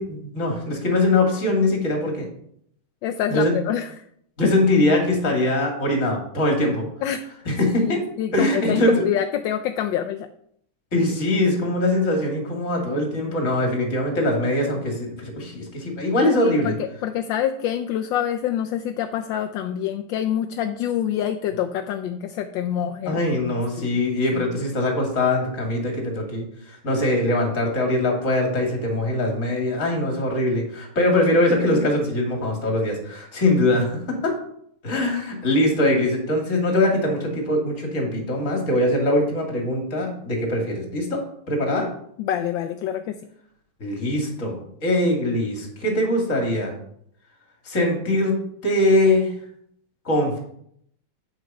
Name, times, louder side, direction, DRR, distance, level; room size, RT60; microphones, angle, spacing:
voice 1, 0.0-2.3 3.3-3.5 4.4-6.9 7.5-8.0 8.3-9.1 10.9-16.7 23.1-34.3 34.8-41.2 41.5-41.9 43.8-46.7 47.7-48.4 48.6-49.3 50.1-50.4, left 1 dB, 35° left, 1 dB, 2.4 m, -22 dB
voice 2, 3.0-4.1 4.4-4.5 7.0-7.2 7.8-10.3 16.4-23.2 23.8-24.0 24.3-24.5 42.2-43.2, left 10 dB, 75° left, 6 dB, 1.2 m, -26 dB
8.2 x 6.4 x 5.3 m, 0.70 s
omnidirectional pair, 2.4 m